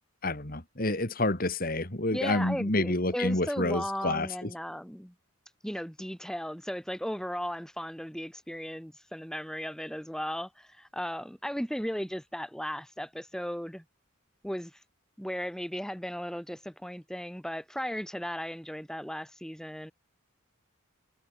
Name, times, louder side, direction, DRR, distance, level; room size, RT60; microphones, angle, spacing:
voice 1, 0.2-4.5, left 2 dB, 45° left, 3.0 m, -29 dB
voice 2, 2.1-5.1 5.6-13.8 14.4-14.8 15.2-19.9, equal, 5° left, 3.7 m, -36 dB
head